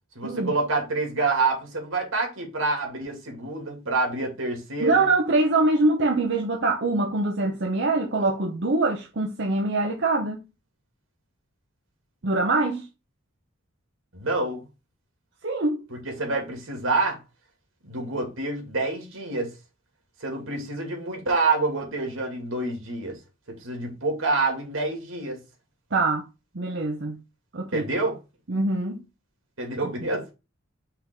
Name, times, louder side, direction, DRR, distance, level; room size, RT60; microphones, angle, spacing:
voice 1, 0.1-5.0 14.1-14.6 15.9-17.2 17.8-19.5 20.2-23.2 23.6-25.4 27.7-28.2 29.6-30.3, right 3 dB, 80° right, 2.5 m, -27 dB
voice 2, 4.8-10.4 12.2-12.9 15.4-15.8 25.9-26.2 26.5-27.2 27.5-27.9 28.5-29.0 30.0-30.1, right 2 dB, 60° right, 0.8 m, -24 dB
5.7 x 3.6 x 5.3 m
head